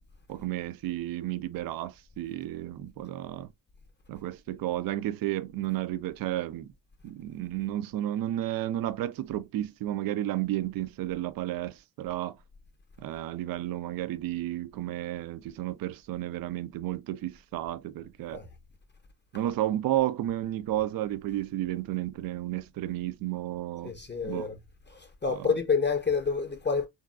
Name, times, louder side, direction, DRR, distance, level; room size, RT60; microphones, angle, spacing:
voice 1, 0.3-3.5 4.1-6.7 7.0-12.4 13.0-18.4 19.3-23.9 24.2-24.4 25.3-25.5, right 14 dB, 50° right, 0.5 m, -32 dB
voice 2, 23.8-24.6 24.9-26.9, left 5 dB, 20° left, 0.8 m, -28 dB
3.7 x 2.6 x 2.3 m
hypercardioid pair, 40°, 48 cm